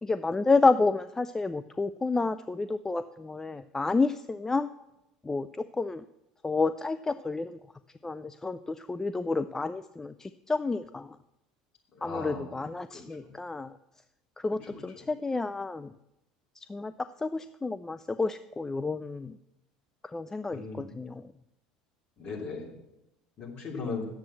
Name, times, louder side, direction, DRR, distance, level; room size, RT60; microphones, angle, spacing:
voice 1, 0.0-4.7 5.2-6.0 6.4-7.6 8.0-11.2 12.0-13.8 14.4-15.9 16.7-16.9 17.2-19.4 20.1-21.2, left 3 dB, 15° left, 11 dB, 0.4 m, -30 dB
voice 2, 11.9-12.6 12.9-13.3 14.7-14.8 20.5-20.9 22.2-22.7 23.4-24.1, left 4 dB, 40° left, -3 dB, 3.3 m, -37 dB
9.2 x 7.4 x 7.4 m, 0.90 s
figure-of-eight pair, 65°, 3 cm